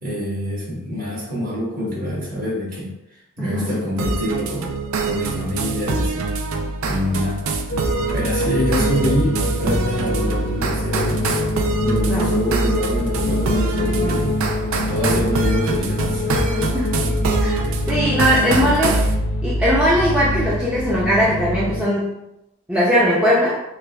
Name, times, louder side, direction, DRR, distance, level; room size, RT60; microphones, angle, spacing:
voice 1, 0.0-2.9 3.4-4.7 5.0-6.3 6.9-7.4 7.9-11.4 11.8-14.4 14.9-16.4 18.4-18.5, equal, 40° right, -6 dB, 1.4 m, -26 dB
voice 2, 3.4-3.8 12.0-12.3 16.5-16.9 17.4-19.1 19.4-22.1 22.7-23.6, equal, 5° right, -7 dB, 0.5 m, -20 dB
sound 1, 4.0-19.1, right 3 dB, 85° right, 0.5 m, -25 dB
sound 2, 7.7-21.8, left 1 dB, 70° left, 0.6 m, -24 dB
6.3 x 2.4 x 2.3 m, 0.87 s
head